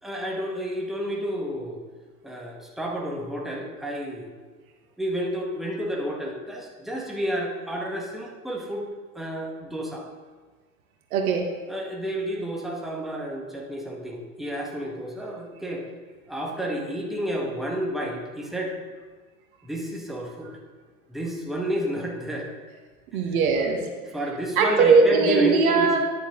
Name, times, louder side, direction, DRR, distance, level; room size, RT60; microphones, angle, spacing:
voice 1, 0.0-1.8 2.2-4.3 5.0-8.9 9.1-10.1 11.7-15.8 16.3-18.8 19.6-20.5 21.1-22.5 23.1-23.2 24.1-26.0, equal, ahead, -2 dB, 1.6 m, -30 dB
voice 2, 11.1-11.5 23.1-23.8 24.6-26.0, right 4 dB, 70° right, 3 dB, 1.4 m, -19 dB
10.5 x 6.8 x 3.8 m, 1.4 s
hypercardioid pair, 85°, 44 cm